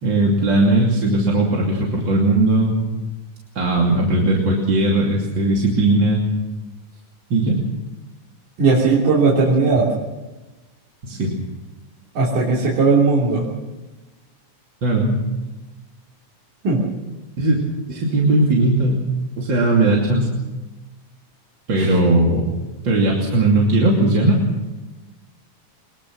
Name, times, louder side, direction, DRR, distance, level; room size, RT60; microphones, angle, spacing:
voice 1, 0.0-2.8 3.6-6.2 7.3-7.6 11.0-11.3 14.8-15.2 17.4-17.6 17.9-19.0 19.4-20.3 21.7-22.5 22.8-24.3, right 2 dB, 40° right, -2 dB, 3.3 m, -18 dB
voice 2, 8.6-9.9 12.2-13.5 16.6-16.8 21.8-21.9, right 4 dB, 85° right, -6 dB, 4.9 m, -17 dB
23.5 x 21.5 x 6.3 m, 1.1 s
omnidirectional pair, 3.5 m